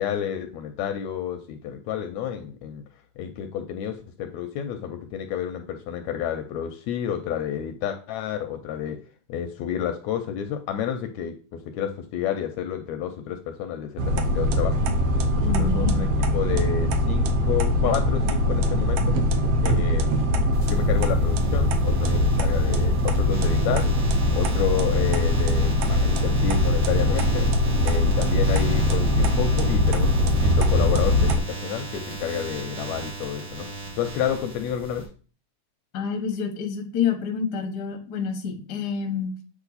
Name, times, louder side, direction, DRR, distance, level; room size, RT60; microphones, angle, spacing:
voice 1, 0.0-2.8 3.2-9.0 9.3-16.1 16.3-19.2 19.6-23.9 24.3-27.5 27.8-33.7 34.0-35.1, left 9 dB, 80° left, 7 dB, 1.7 m, -30 dB
sound 1, 14.0-31.4, left 1 dB, 75° right, 1.4 m, -22 dB
voice 2, 15.4-16.1 35.9-39.3, left 6 dB, 60° left, 3 dB, 1.0 m, -28 dB
sound 2, 20.5-35.0, right 3 dB, 45° right, 2.7 m, -37 dB
8.2 x 3.0 x 4.0 m, 0.38 s
omnidirectional pair, 3.5 m